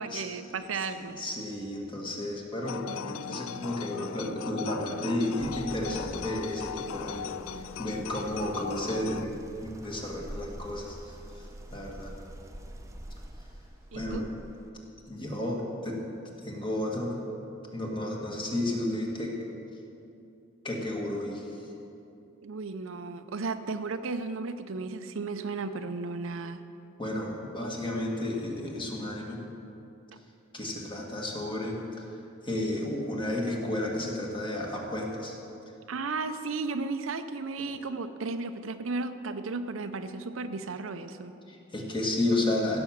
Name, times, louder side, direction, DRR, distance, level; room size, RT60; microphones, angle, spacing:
voice 1, 0.0-1.2 13.9-14.3 22.4-26.6 35.9-41.3, right 3 dB, 75° right, 9 dB, 0.6 m, -34 dB
voice 2, 1.2-11.2 11.7-12.1 13.9-14.2 15.1-16.0 16.4-17.1 17.7-19.4 20.6-21.6 27.0-29.4 30.5-31.8 32.4-35.3 41.5-42.8, left 1 dB, 25° left, -1 dB, 1.8 m, -32 dB
sound 1, 2.6-9.3, left 8 dB, 80° left, 0.3 m, -38 dB
sound 2, 5.4-14.7, equal, 15° right, 0.8 m, -45 dB
16.0 x 6.0 x 7.2 m, 2.7 s
head